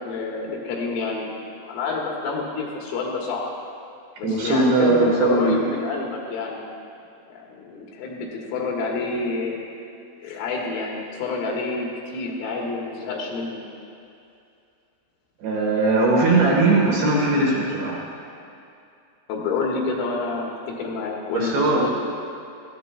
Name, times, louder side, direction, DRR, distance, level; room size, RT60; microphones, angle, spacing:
voice 1, 0.0-1.4 1.7-3.5 4.2-6.6 7.3-9.6 10.2-13.6 19.3-21.9, left 3 dB, 80° left, -2 dB, 4.0 m, -28 dB
voice 2, 4.2-5.5 15.4-18.0 21.3-21.9, right 2 dB, 70° right, -4 dB, 2.8 m, -19 dB
18.0 x 13.0 x 2.3 m, 2.6 s
omnidirectional pair, 6.0 m